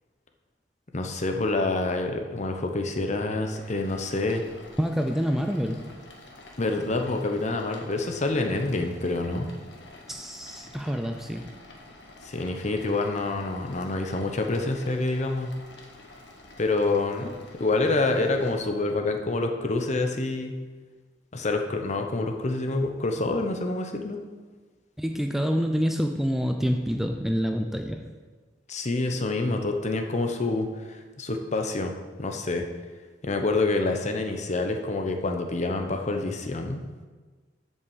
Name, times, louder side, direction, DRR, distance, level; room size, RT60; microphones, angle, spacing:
voice 1, 0.9-4.4 6.6-9.5 12.2-15.5 16.6-17.3 17.6-20.5 21.3-24.2 28.7-31.9 32.2-32.6 33.2-36.8, left 2 dB, 40° left, 4 dB, 0.9 m, -27 dB
sound 1, 3.5-18.6, left 2 dB, 70° left, 1.5 m, -49 dB
voice 2, 4.8-6.0 10.1-11.5 25.0-28.1, equal, ahead, 4 dB, 0.4 m, -27 dB
8.1 x 5.5 x 7.2 m, 1.4 s
head